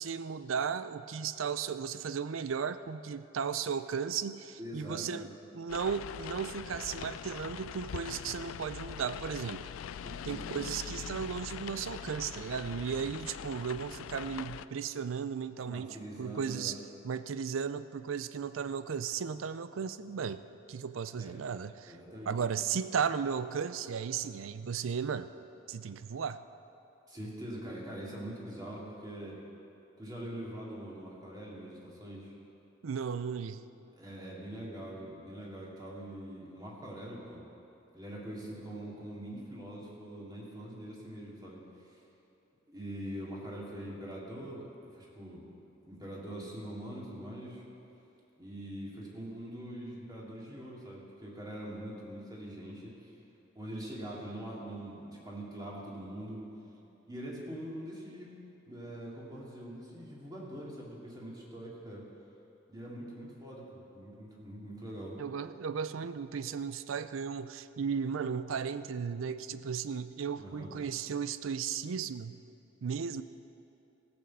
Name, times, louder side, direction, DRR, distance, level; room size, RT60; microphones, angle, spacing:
voice 1, 0.0-9.7 10.2-16.8 17.0-20.4 20.7-22.0 22.3-25.3 25.7-26.4 32.8-33.6 65.2-72.4 72.8-73.2, right 6 dB, 80° right, 13 dB, 0.5 m, -35 dB
voice 2, 4.6-5.3 10.0-10.4 15.6-16.8 21.1-21.4 21.9-22.4 27.1-29.4 30.0-32.3 33.9-37.4 37.9-42.0 42.7-45.5 45.9-47.6 48.4-53.1 53.5-56.4 57.1-58.3 58.6-62.0 62.7-65.2 70.4-70.7, right 1 dB, 20° right, -5 dB, 2.5 m, -43 dB
sound 1, 5.7-14.7, left 8 dB, 85° left, 0.3 m, -42 dB
16.0 x 6.0 x 7.4 m, 2.8 s
head